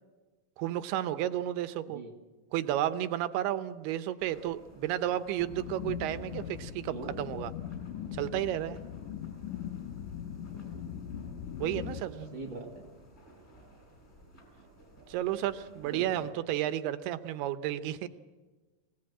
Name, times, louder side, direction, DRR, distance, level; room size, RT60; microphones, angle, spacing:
voice 1, 0.6-2.0 2.5-7.5 8.1-8.8 11.6-12.2 15.1-18.1, right 12 dB, 80° right, 11 dB, 2.7 m, -32 dB
sound 1, 4.2-16.3, right 2 dB, 15° left, 6.7 m, -56 dB
sound 2, 5.4-12.0, left 9 dB, 70° left, 2.0 m, -40 dB
voice 2, 12.0-12.9 15.9-16.3, right 3 dB, 35° right, 3 dB, 2.6 m, -42 dB
24.5 x 18.0 x 8.8 m, 1.3 s
omnidirectional pair, 4.8 m